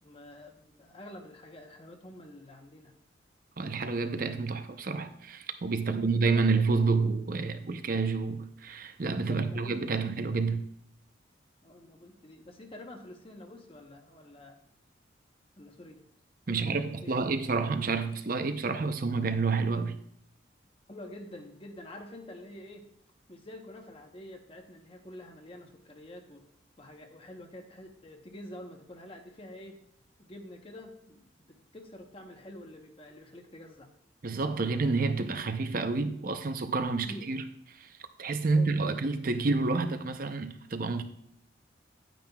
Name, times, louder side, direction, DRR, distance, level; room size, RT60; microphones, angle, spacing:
voice 1, 0.0-3.0 5.8-6.4 6.7-6.8 9.3-9.8 11.6-14.6 15.6-16.0 16.5-17.2 20.9-22.9 23.3-26.4 26.8-29.8 30.2-33.9 37.0-37.3 38.5-38.9, left 1 dB, 30° left, 0.9 m, -47 dB
voice 2, 3.6-10.6 16.5-20.0 34.2-37.4 37.8-37.9 38.2-41.0, right 4 dB, 50° right, 0.6 m, -29 dB
10.5 x 9.2 x 2.3 m
head